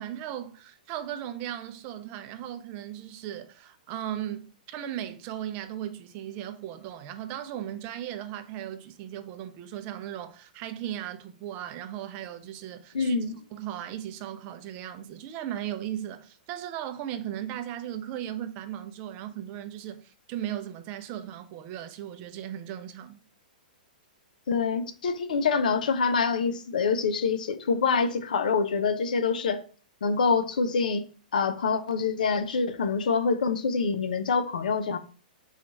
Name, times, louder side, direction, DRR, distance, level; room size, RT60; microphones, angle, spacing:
voice 1, 0.0-13.2 13.5-23.2, right 11 dB, 35° right, 0.5 m, -37 dB
voice 2, 12.9-13.3 24.5-29.6 30.0-31.0 31.3-35.0, left 5 dB, 65° left, 0.5 m, -26 dB
4.3 x 2.4 x 4.0 m
figure-of-eight pair, 115°, 5 cm